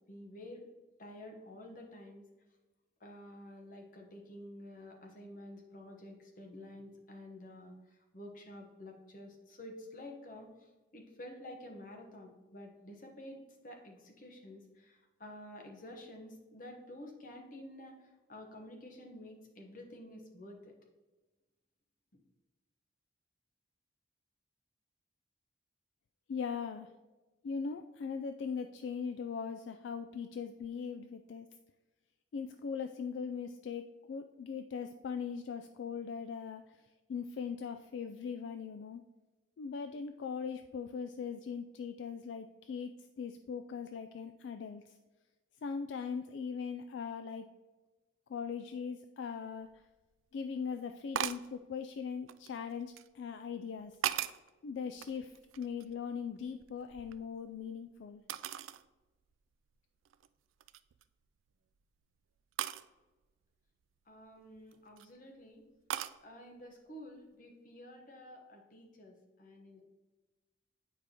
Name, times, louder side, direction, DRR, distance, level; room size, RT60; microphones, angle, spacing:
voice 1, 0.1-0.7 1.0-2.2 3.0-20.7 64.1-65.6 66.2-69.8, left 1 dB, 45° left, 2 dB, 1.1 m, -50 dB
voice 2, 26.3-26.9 27.4-31.5 32.3-39.0 39.6-45.0 45.6-47.5 48.3-49.8 50.3-54.0 54.6-58.2, left 6 dB, 65° left, 7 dB, 0.3 m, -40 dB
sound 1, 49.7-49.8 51.1-51.5 52.3-53.1 53.7-54.5 55.0-56.0 56.4-57.6 58.3-58.8 59.3-59.4 60.0-60.3 60.6-61.0 62.6-62.9 64.6-65.1 65.9-66.2, right 11 dB, 85° right, 0.3 m, -39 dB
9.0 x 4.8 x 2.9 m, 1.2 s
head